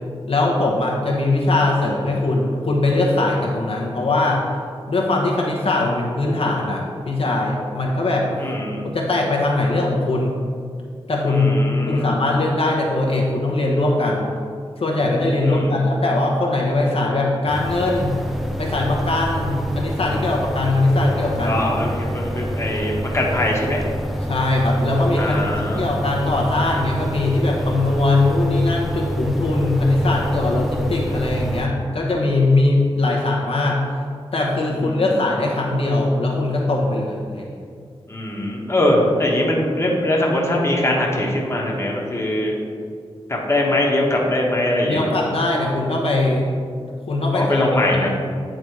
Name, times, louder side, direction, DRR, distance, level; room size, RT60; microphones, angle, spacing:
voice 1, 0.2-4.4 4.9-8.3 8.8-10.3 11.1-11.5 11.9-14.3 14.8-18.2 18.6-21.6 24.2-33.8 34.3-37.5 44.9-46.5 47.1-48.1, left 2 dB, 70° left, -2 dB, 1.0 m, -20 dB
voice 2, 8.4-8.8 11.3-12.1 15.4-15.7 21.4-23.9 25.2-25.8 34.7-35.0 38.1-42.5 43.3-45.0 47.3-48.1, left 1 dB, 25° left, -2 dB, 1.3 m, -21 dB
sound 1, 17.5-31.7, equal, ahead, 0.6 m, -27 dB
9.0 x 3.9 x 4.7 m, 2.2 s
wide cardioid pair, 95°, 10 cm